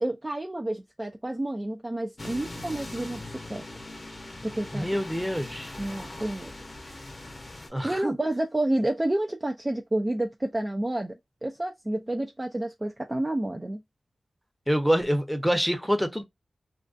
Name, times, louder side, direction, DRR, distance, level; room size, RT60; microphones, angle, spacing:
voice 1, 0.0-3.6 4.4-4.9 5.8-6.5 7.8-13.8, right 1 dB, 25° right, 0.3 m, -30 dB
sound 1, 2.2-7.7, left 2 dB, 40° left, 0.7 m, -41 dB
voice 2, 4.7-5.7 7.7-8.1 14.7-16.2, equal, 5° right, 0.7 m, -26 dB
2.5 x 2.2 x 2.4 m
cardioid pair, 60°, 0 cm